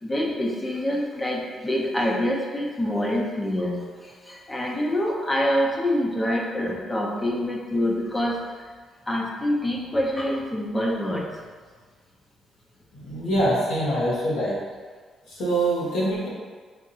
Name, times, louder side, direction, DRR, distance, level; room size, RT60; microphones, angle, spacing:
voice 1, 0.0-8.4 9.1-11.3, left 1 dB, 20° left, -2 dB, 0.6 m, -26 dB
voice 2, 12.9-14.6 15.3-16.3, right 1 dB, 90° left, -6 dB, 1.2 m, -24 dB
4.8 x 2.5 x 2.7 m, 1.5 s
cardioid pair, 90°, 0 cm